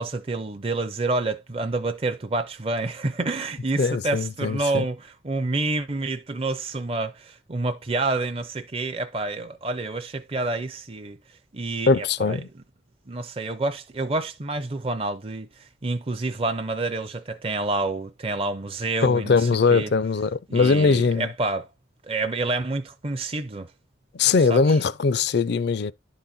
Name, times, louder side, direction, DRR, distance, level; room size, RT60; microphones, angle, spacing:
voice 1, 0.0-11.2 11.5-12.4 13.1-19.9 20.5-21.7 22.1-23.7 24.5-24.8, right 2 dB, 30° right, 0.5 m, -28 dB
voice 2, 3.8-4.8 11.9-12.5 19.0-21.3 24.1-25.9, left 4 dB, 55° left, 0.4 m, -21 dB
11.0 x 3.9 x 4.2 m
head